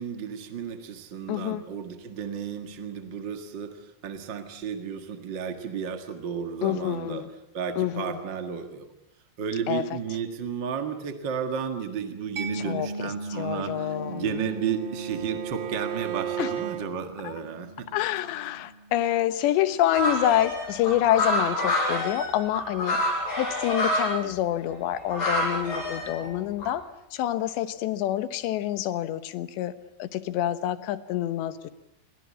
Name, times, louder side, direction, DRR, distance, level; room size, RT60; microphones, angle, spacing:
voice 1, 0.0-7.2 7.5-8.9 9.4-17.9 24.2-24.3 26.2-26.3, right 7 dB, 50° right, 6 dB, 1.4 m, -33 dB
voice 2, 1.3-1.6 6.6-7.3 7.8-8.2 9.7-9.9 12.6-14.4 16.4-16.5 17.3-17.4 17.9-23.0 23.4-26.8 27.1-31.7, left 12 dB, 85° left, 12 dB, 3.4 m, -27 dB
Mallet percussion, 12.4-19.7, right 2 dB, 35° right, 3.8 m, -39 dB
Bowed string instrument, 13.7-16.9, right 10 dB, 80° right, 3.7 m, -35 dB
sound 1, 19.9-24.1 24.7-26.3 26.6-26.7, left 1 dB, 65° left, 9.7 m, -27 dB
29.0 x 23.5 x 8.5 m, 0.83 s
omnidirectional pair, 4.9 m